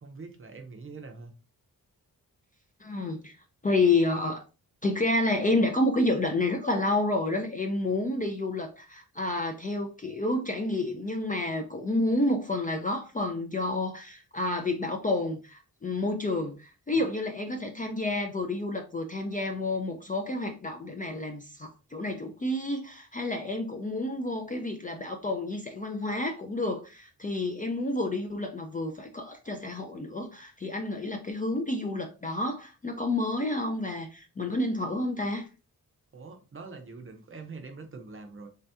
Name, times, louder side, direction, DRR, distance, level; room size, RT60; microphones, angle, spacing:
voice 1, 0.0-1.3 16.9-17.1 36.1-38.5, right 4 dB, 35° right, 0.6 m, -44 dB
voice 2, 2.8-3.4 3.6-4.4 4.8-35.5, left 2 dB, 25° left, 0.4 m, -29 dB
3.4 x 2.8 x 3.3 m
wide cardioid pair, 165°, 37 cm